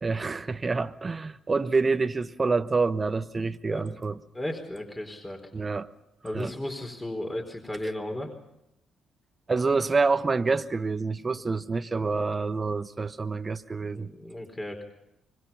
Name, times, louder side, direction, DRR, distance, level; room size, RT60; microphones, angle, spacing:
voice 1, 0.0-4.2 5.5-5.9 6.3-6.5 9.5-14.1, right 4 dB, 30° right, 11 dB, 1.1 m, -27 dB
voice 2, 4.3-5.4 6.2-8.3 12.0-12.2 13.8-14.8, left 1 dB, 15° left, 4 dB, 4.4 m, -35 dB
25.5 x 22.5 x 5.8 m, 0.85 s
hypercardioid pair, 45°, 0 cm